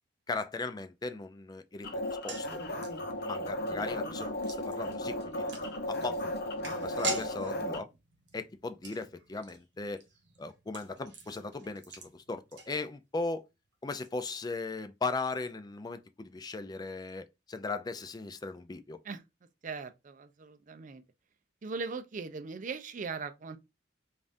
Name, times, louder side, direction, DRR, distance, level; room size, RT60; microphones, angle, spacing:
voice 1, 0.3-2.6 3.2-5.6 5.9-7.9 8.3-10.0 10.4-13.4 13.8-19.0, left 3 dB, 20° left, 0.4 m, -38 dB
sound 1, 1.8-7.8, left 1 dB, 60° left, 0.8 m, -35 dB
sound 2, 2.0-13.2 13.5-13.6 13.9-14.1, right 2 dB, 70° right, 1.1 m, -44 dB
voice 2, 19.6-21.0 21.6-23.6, right 4 dB, 45° right, 0.4 m, -39 dB
5.3 x 2.5 x 2.6 m
head